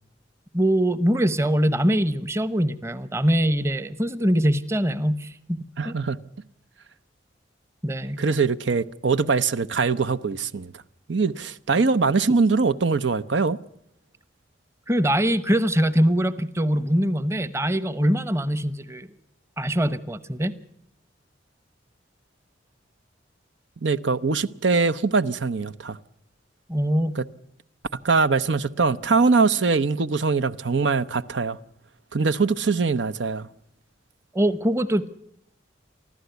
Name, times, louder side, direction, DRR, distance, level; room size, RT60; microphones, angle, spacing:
voice 1, 0.5-5.9 7.8-8.2 14.9-19.1 19.6-20.5 26.7-27.2 34.3-35.1, equal, 15° right, 0.9 m, -23 dB
voice 2, 5.8-6.2 8.2-10.7 11.1-13.6 23.8-26.0 27.2-27.3 28.0-31.6 32.1-33.5, right 4 dB, 75° right, 0.8 m, -22 dB
24.5 x 15.0 x 8.1 m
head